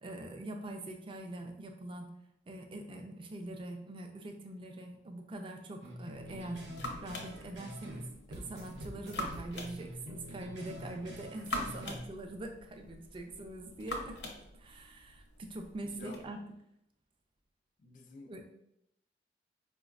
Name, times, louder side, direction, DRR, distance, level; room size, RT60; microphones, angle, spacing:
voice 1, 0.0-2.1 2.5-6.6 7.0-16.4 18.3-18.4, right 1 dB, 30° right, 4 dB, 0.4 m, -44 dB
sound 1, 5.8-8.0 8.3-12.0, equal, 85° right, 0.6 m, -46 dB
sound 2, 6.1-16.2, left 1 dB, 75° left, 0.7 m, -45 dB
voice 2, 15.8-16.3 17.8-18.4, left 2 dB, 45° left, 2 dB, 0.3 m, -51 dB
4.6 x 2.1 x 2.4 m, 0.77 s
head